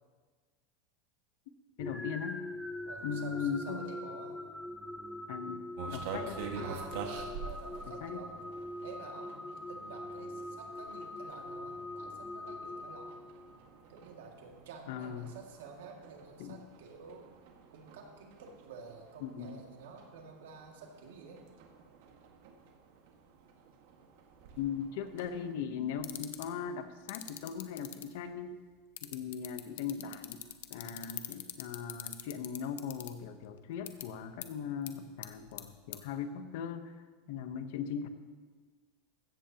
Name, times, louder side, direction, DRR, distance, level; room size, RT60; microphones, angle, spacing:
voice 1, 1.8-2.4 3.0-3.9 5.3-6.5 8.0-8.2 14.9-15.3 16.4-16.6 19.2-19.6 24.6-28.6 29.0-30.4 30.7-36.9 37.3-38.1, left 7 dB, 65° left, 9 dB, 0.9 m, -39 dB
sound 1, 1.8-13.8, left 1 dB, 5° left, 0.6 m, -43 dB
voice 2, 2.9-4.4 6.5-8.4 8.8-13.3 13.9-17.3 17.7-21.4 29.0-29.2 30.7-31.0 37.2-37.4, right 5 dB, 90° right, 1 dB, 2.2 m, -50 dB
sound 2, 5.8-25.5, right 5 dB, 70° right, 1.7 m, -48 dB
sound 3, 26.0-26.5 27.1-28.0 29.0-33.1 33.9-34.0 34.4-34.5 34.9-35.0 35.2-35.6 35.9-36.0, left 13 dB, 90° left, 0.9 m, -40 dB
15.5 x 14.0 x 2.9 m, 1.5 s
supercardioid pair, 155°, 0 cm